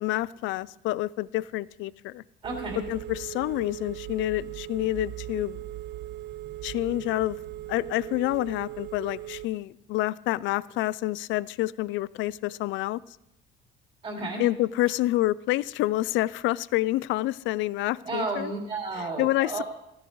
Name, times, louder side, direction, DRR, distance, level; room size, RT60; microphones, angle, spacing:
voice 1, 0.0-2.2 2.9-5.6 6.6-7.4 7.7-13.0 14.4-18.5 19.2-19.6, left 16 dB, 65° left, 20 dB, 0.4 m, -28 dB
voice 2, 2.4-2.8 14.0-14.4 18.0-19.6, right 3 dB, 25° right, -1 dB, 3.1 m, -32 dB
Telephone, 2.4-9.4, right 14 dB, 55° right, 0.5 m, -39 dB
16.5 x 16.0 x 3.2 m, 0.84 s
cardioid pair, 170°, 21 cm